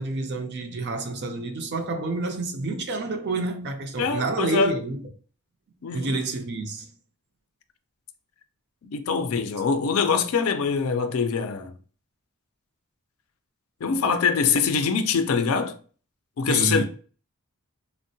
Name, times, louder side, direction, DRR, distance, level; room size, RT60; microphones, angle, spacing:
voice 1, 0.0-5.0 5.9-6.9 16.5-16.8, right 3 dB, 50° right, 0.5 m, -28 dB
voice 2, 4.0-4.8 5.8-6.2 8.9-11.7 13.8-15.8 16.4-16.8, left 5 dB, 70° left, 0.4 m, -24 dB
3.5 x 2.1 x 2.7 m
head